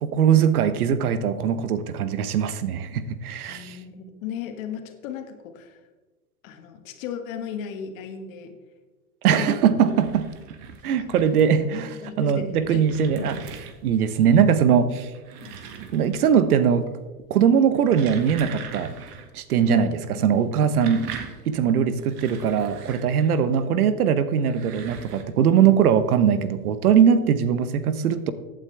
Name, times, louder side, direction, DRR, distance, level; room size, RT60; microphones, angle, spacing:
voice 1, 0.0-3.7 9.2-10.3 10.8-13.4 13.8-15.1 15.9-16.9 17.3-18.9 19.3-19.9 20.2-21.0 21.5-28.3, right 8 dB, 80° right, 13 dB, 1.0 m, -21 dB
voice 2, 3.5-5.8 6.4-8.6 9.3-9.5 11.0-11.1 12.0-12.8 13.2-13.5 15.4-15.6 19.6-20.4, left 8 dB, 65° left, 6 dB, 1.7 m, -35 dB
sound 1, 9.7-11.6 12.3-14.0 15.0-16.5 16.7-17.2 17.6-19.3 19.6-19.7 20.5-23.6 24.3-25.2, right 7 dB, 55° right, 1.8 m, -41 dB
15.0 x 8.9 x 3.4 m, 1.3 s
hypercardioid pair, 100°, 44 cm